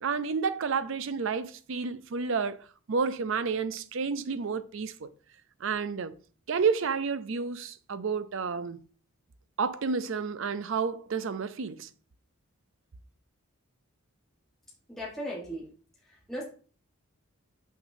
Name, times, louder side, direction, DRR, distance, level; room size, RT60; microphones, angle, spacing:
voice 1, 0.0-2.6 2.9-5.1 5.6-6.1 6.5-8.8 9.6-11.9, right 5 dB, 60° right, 0.5 m, -30 dB
voice 2, 14.9-15.6 16.3-16.4, equal, ahead, 1.3 m, -36 dB
6.0 x 5.9 x 2.7 m
head